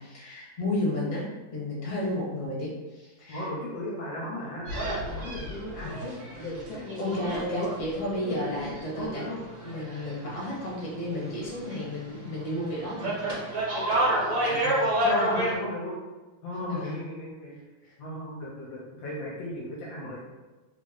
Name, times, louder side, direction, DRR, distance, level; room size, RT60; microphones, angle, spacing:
voice 1, 0.0-3.5 5.8-6.1 7.0-13.7 14.5-14.8 16.6-17.0 17.8-17.9, left 1 dB, 45° left, -6 dB, 1.3 m, -33 dB
voice 2, 3.3-7.7 8.2-9.4 15.0-16.0 16.4-17.6 18.0-20.2, left 1 dB, 75° left, -5 dB, 1.3 m, -36 dB
sound 1, 4.7-10.5 10.7-12.0 12.3-15.6, right 1 dB, 55° right, 1.3 m, -29 dB
3.3 x 2.0 x 3.7 m, 1.2 s
omnidirectional pair, 2.2 m